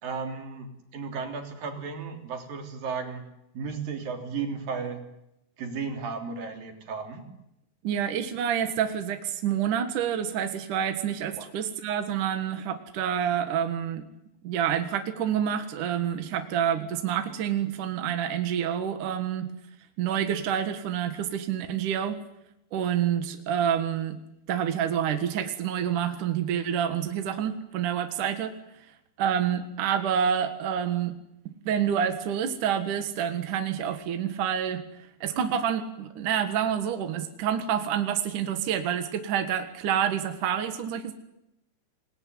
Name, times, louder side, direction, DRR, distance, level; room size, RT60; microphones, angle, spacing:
voice 1, 0.0-0.7 0.9-3.3 3.5-5.0 5.6-7.3 11.4-11.5, right 5 dB, 45° right, 5 dB, 4.6 m, -34 dB
voice 2, 7.8-14.1 14.4-19.5 20.0-22.2 22.7-24.2 24.5-28.5 29.2-31.1 31.7-34.8 35.2-41.1, right 9 dB, 60° right, 8 dB, 2.2 m, -28 dB
28.0 x 20.5 x 9.7 m, 0.86 s
omnidirectional pair, 6.0 m